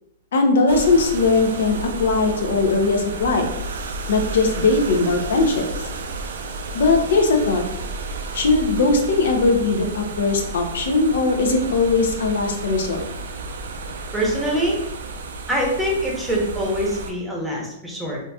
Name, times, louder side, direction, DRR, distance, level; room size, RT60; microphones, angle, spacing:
voice 1, 0.3-3.5 4.1-5.7 6.7-7.6 8.3-13.1, left 3 dB, 75° left, 3 dB, 0.6 m, -19 dB
sound 1, 0.7-17.1, right 3 dB, 85° right, 0.4 m, -32 dB
voice 2, 14.1-14.8 15.5-18.2, equal, 5° right, -4 dB, 0.8 m, -24 dB
3.9 x 2.5 x 2.3 m, 0.81 s
hypercardioid pair, 145°, 0 cm